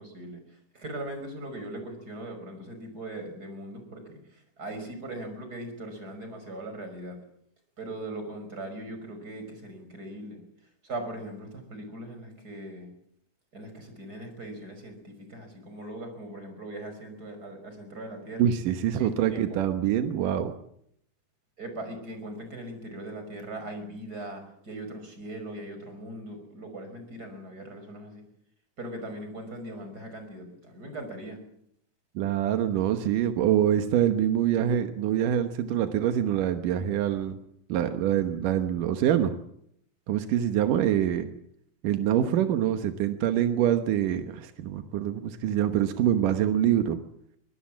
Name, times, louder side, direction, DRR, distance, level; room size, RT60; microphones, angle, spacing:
voice 1, 0.0-7.2 7.8-10.4 10.8-12.9 13.5-18.5 19.0-19.6 21.6-28.2 28.8-31.4 40.6-40.7, right 1 dB, 30° right, 6 dB, 6.0 m, -40 dB
voice 2, 18.4-20.5 32.2-37.4 37.7-39.3 40.1-41.3 41.8-47.0, right 10 dB, 90° right, 7 dB, 2.8 m, -25 dB
24.0 x 19.0 x 7.4 m, 0.71 s
omnidirectional pair, 3.6 m